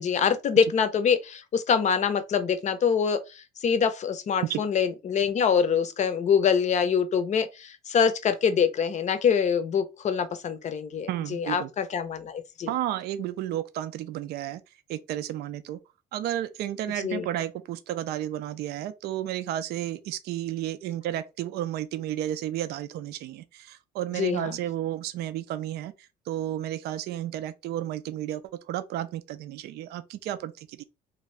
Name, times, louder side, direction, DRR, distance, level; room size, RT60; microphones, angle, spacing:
voice 1, 0.0-12.7 17.0-17.3 24.2-24.6, left 7 dB, 45° left, 0.5 m, -25 dB
voice 2, 11.1-11.7 12.7-14.6 14.9-15.8 16.1-30.8, right 12 dB, 75° right, 0.4 m, -32 dB
2.6 x 2.5 x 3.2 m
cardioid pair, 110°, 17 cm